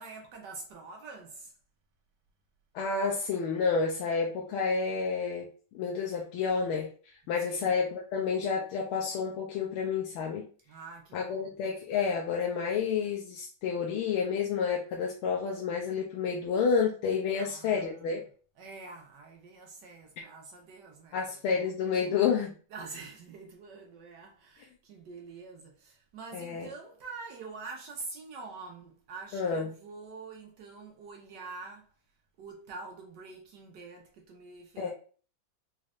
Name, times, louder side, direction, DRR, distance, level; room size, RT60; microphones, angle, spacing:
voice 1, 0.0-1.5 7.4-7.7 10.7-11.5 17.3-18.2 18.6-21.2 22.7-31.9 32.4-34.9, right 4 dB, 70° right, 1.1 m, -46 dB
voice 2, 2.7-5.5 5.7-6.9 7.3-10.4 11.1-18.2 21.1-22.5 26.3-26.7 29.3-29.7 34.8-34.9, left 5 dB, 85° left, 1.5 m, -30 dB
4.2 x 3.1 x 2.4 m
omnidirectional pair, 2.3 m